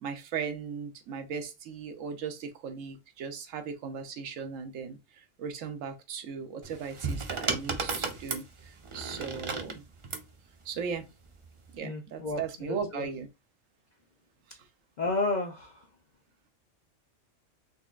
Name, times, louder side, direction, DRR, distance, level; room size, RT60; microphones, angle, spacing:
voice 1, 0.0-9.8 10.6-11.1 11.7-13.3 14.5-14.7, right 6 dB, 85° right, 1.1 m, -37 dB
sound 1, 6.6-10.3 11.4-11.7, right 4 dB, 45° right, 0.4 m, -34 dB
voice 2, 11.8-13.1 15.0-15.9, left 3 dB, 55° left, 0.5 m, -32 dB
4.1 x 3.1 x 2.4 m
omnidirectional pair, 1.3 m